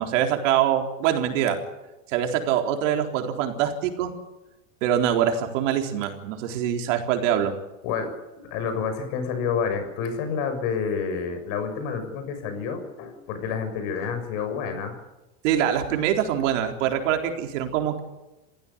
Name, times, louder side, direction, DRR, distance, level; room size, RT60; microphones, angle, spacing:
voice 1, 0.0-1.6 2.1-4.1 4.8-7.5 15.4-18.0, right 10 dB, 70° right, 4 dB, 4.1 m, -24 dB
voice 2, 7.8-15.0, left 6 dB, 60° left, 7 dB, 6.9 m, -29 dB
28.5 x 16.0 x 8.8 m, 1.0 s
supercardioid pair, 125°, 38 cm